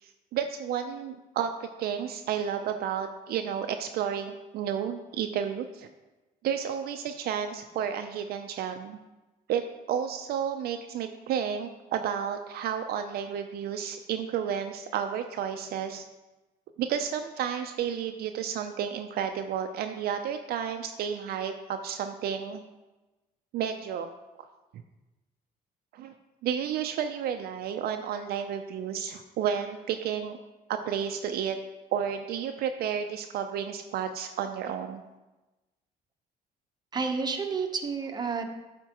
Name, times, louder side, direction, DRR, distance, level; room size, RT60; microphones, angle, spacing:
voice 1, 0.0-5.9 6.4-9.0 9.5-9.6 9.9-16.0 16.8-22.6 23.5-24.1 25.9-26.1 26.4-30.4 30.7-31.6 31.9-35.0, right 8 dB, 65° right, 7 dB, 0.5 m, -31 dB
voice 2, 36.9-38.5, right 5 dB, 25° right, 4 dB, 0.8 m, -30 dB
10.5 x 4.3 x 2.9 m, 1.1 s
cardioid pair, 110°, 17 cm